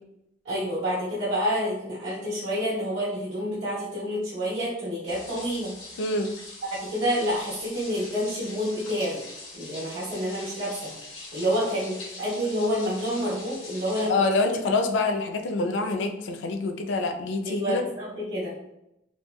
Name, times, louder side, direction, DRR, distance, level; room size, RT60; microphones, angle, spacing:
voice 1, 0.4-5.7 6.7-9.2 9.5-10.9 11.3-14.1 14.5-14.6 17.4-18.5, equal, 75° right, -10 dB, 1.0 m, -28 dB
sound 1, 5.1-14.1, left 2 dB, 90° left, 1.2 m, -43 dB
voice 2, 6.0-6.3 14.1-17.8, left 3 dB, 65° left, 5 dB, 0.3 m, -26 dB
3.1 x 2.1 x 2.3 m, 0.84 s
head